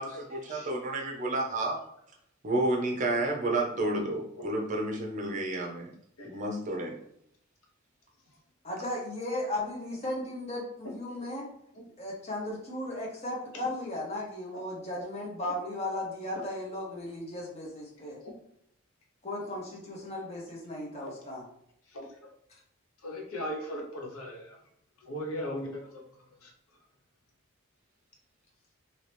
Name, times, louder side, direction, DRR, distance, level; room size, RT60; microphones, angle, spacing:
voice 1, 0.0-1.8 2.4-5.9 6.2-7.0, right 2 dB, 35° right, 0 dB, 0.6 m, -30 dB
voice 2, 8.6-11.5 12.0-18.2 19.2-21.4, left 1 dB, 30° left, -3 dB, 1.0 m, -36 dB
voice 3, 23.0-24.6 25.0-26.0 26.4-26.5, equal, 80° left, -1 dB, 0.9 m, -38 dB
2.8 x 2.8 x 3.3 m, 0.72 s
head